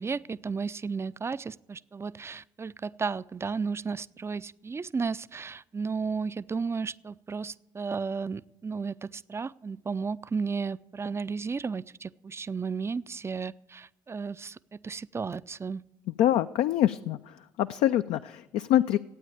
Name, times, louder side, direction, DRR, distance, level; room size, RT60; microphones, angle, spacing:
voice 1, 0.0-15.8, right 5 dB, 20° right, 17 dB, 0.4 m, -34 dB
voice 2, 16.2-17.2 17.6-19.0, left 12 dB, 65° left, 11 dB, 0.4 m, -24 dB
13.0 x 9.0 x 8.7 m, 0.93 s
hypercardioid pair, 50°, 12 cm